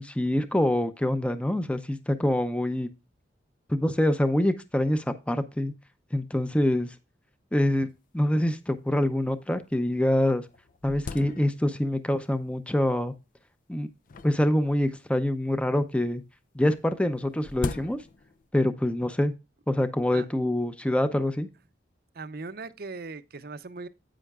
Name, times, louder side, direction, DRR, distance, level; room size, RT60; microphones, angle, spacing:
voice 1, 0.0-2.9 3.7-5.7 6.1-6.9 7.5-7.9 8.1-10.4 10.8-13.1 13.7-13.9 14.2-16.2 16.5-18.0 18.5-19.3 19.7-21.5, left 1 dB, 5° left, 0.7 m, -25 dB
sound 1, 7.9-8.0 8.2-8.3 9.0-9.1 9.7-9.8 10.2-12.0 12.7-13.1 14.1-15.4 16.7-18.5, left 4 dB, 45° left, 0.4 m, -40 dB
voice 2, 22.1-23.9, right 3 dB, 55° right, 0.7 m, -39 dB
10.0 x 9.0 x 2.4 m
head